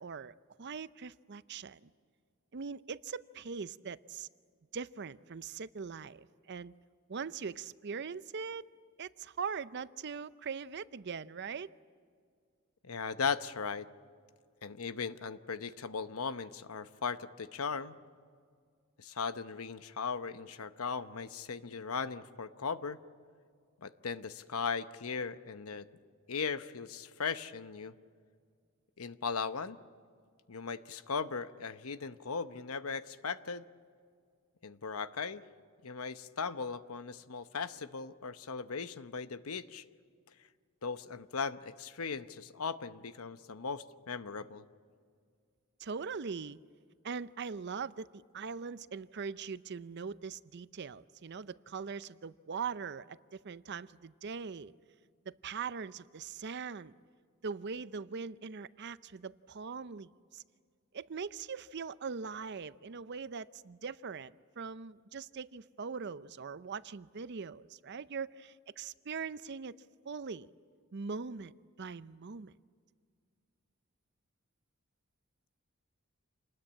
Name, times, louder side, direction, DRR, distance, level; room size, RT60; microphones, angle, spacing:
voice 1, 0.0-1.9 2.5-4.3 4.7-6.7 7.1-8.7 9.0-11.7 45.8-46.6 47.0-54.7 55.3-56.9 57.4-60.4 60.9-69.7 70.0-70.5 70.9-71.5 71.8-72.5, right 5 dB, 50° right, 0.6 m, -41 dB
voice 2, 12.8-13.9 14.6-18.0 19.0-23.0 23.8-25.9 26.3-27.9 29.0-29.8 30.5-33.7 34.6-35.4 35.8-39.8 40.8-44.6, left 5 dB, 80° left, 0.9 m, -38 dB
27.5 x 20.0 x 8.8 m
head